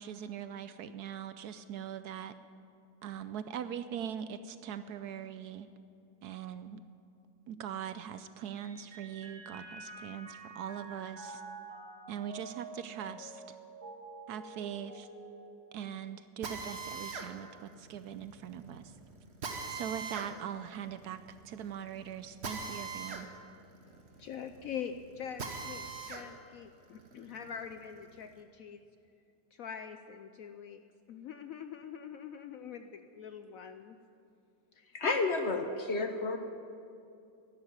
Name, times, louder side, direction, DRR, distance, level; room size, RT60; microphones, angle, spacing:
voice 1, 0.0-2.4 3.0-5.7 6.2-6.8 7.5-11.4 12.1-13.4 14.3-15.1 15.7-18.9 19.7-21.2 21.4-23.3, right 9 dB, 70° right, 12 dB, 1.0 m, -41 dB
Mallet percussion, 8.6-16.3, right 3 dB, 25° right, 2.2 m, -48 dB
Drill, 16.4-26.3 26.7-28.3, right 4 dB, 40° right, 1.3 m, -43 dB
voice 2, 23.9-28.8 29.5-30.8 31.1-34.0 34.7-35.0, left 7 dB, 70° left, 8 dB, 0.8 m, -44 dB
voice 3, 34.9-36.4, left 3 dB, 50° left, 6 dB, 0.9 m, -31 dB
12.0 x 11.5 x 9.3 m, 2.6 s
omnidirectional pair, 1.9 m